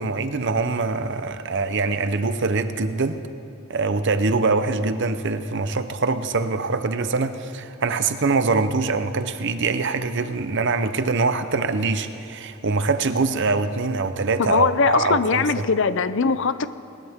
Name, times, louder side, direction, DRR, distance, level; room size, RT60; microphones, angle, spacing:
voice 1, 0.0-3.2 3.7-15.6, right 3 dB, 60° right, 0.8 m, -23 dB
voice 2, 14.4-16.7, left 5 dB, 65° left, 0.6 m, -21 dB
20.0 x 19.5 x 3.6 m
head